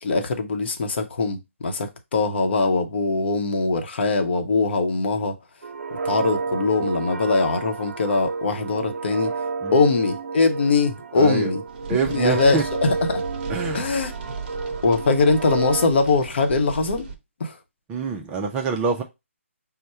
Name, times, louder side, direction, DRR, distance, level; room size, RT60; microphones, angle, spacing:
voice 1, 0.0-5.3 6.0-9.3 9.7-11.6 12.1-13.2 13.7-14.1 14.8-17.1 17.4-17.6, left 3 dB, 50° left, 0.8 m, -22 dB
sound 1, 5.6-15.9, right 4 dB, 65° right, 0.5 m, -30 dB
voice 2, 11.2-11.5 11.9-12.6 13.5-13.8 17.9-19.0, right 5 dB, 10° right, 0.4 m, -25 dB
sound 2, 11.7-17.2, right 4 dB, 40° right, 0.8 m, -37 dB
5.3 x 2.1 x 4.2 m
figure-of-eight pair, 150°, 7 cm